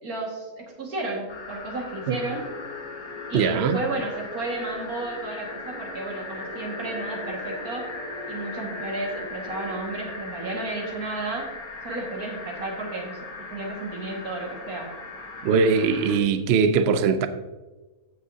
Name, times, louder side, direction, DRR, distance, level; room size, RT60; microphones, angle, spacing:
voice 1, 0.0-2.5 3.3-7.9 8.3-11.5 11.8-13.2 13.5-14.9, right 2 dB, 90° right, 2.4 m, -32 dB
sound 1, 1.3-16.2, left 3 dB, 85° left, 1.8 m, -39 dB
sound 2, 2.1-9.8, left 2 dB, 70° left, 2.9 m, -41 dB
voice 2, 3.3-3.8 15.4-17.3, right 5 dB, 60° right, 0.7 m, -21 dB
15.0 x 6.2 x 2.8 m
omnidirectional pair, 1.5 m